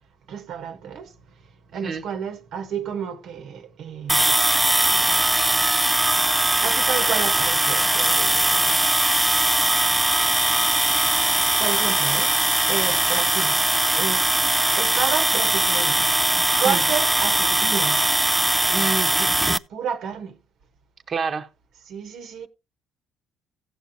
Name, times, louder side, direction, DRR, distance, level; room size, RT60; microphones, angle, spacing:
voice 1, 0.3-1.1 1.7-4.4 6.6-8.9 11.5-12.3 12.6-13.6 13.9-14.2 14.8-16.1 16.6-18.1 18.7-18.9 19.2-20.3 21.9-22.5, right 7 dB, 70° right, 1.1 m, -31 dB
sound 1, 4.1-19.6, right 1 dB, 10° right, 0.4 m, -20 dB
voice 2, 18.7-19.1 21.1-21.5, right 4 dB, 45° right, 1.1 m, -27 dB
16.0 x 7.1 x 2.7 m
cardioid pair, 85°, 0 cm